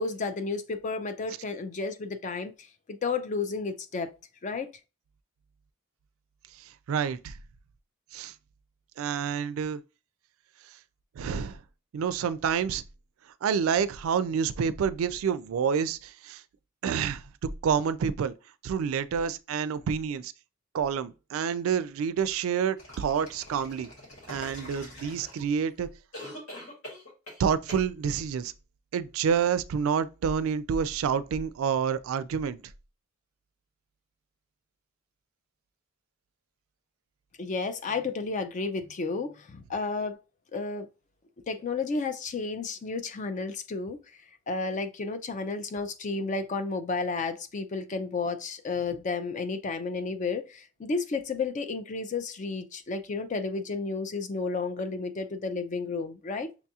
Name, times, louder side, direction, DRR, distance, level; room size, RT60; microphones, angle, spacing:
voice 1, 0.0-4.1 4.4-4.7 37.4-40.2 40.5-40.9 41.5-44.2 44.5-56.5, left 4 dB, 35° left, 0.4 m, -32 dB
voice 2, 6.6-7.4 8.1-8.3 9.0-9.8 11.2-11.6 11.9-12.8 13.4-16.4 16.8-17.2 17.6-18.3 18.6-20.3 20.7-23.9 24.3-25.9 27.4-28.5 28.9-32.6, right 7 dB, 80° right, 0.3 m, -28 dB
sound 1, 22.8-25.7 26.1-27.4 27.7-27.9, left 1 dB, 70° left, 1.8 m, -44 dB
5.9 x 2.3 x 2.7 m
head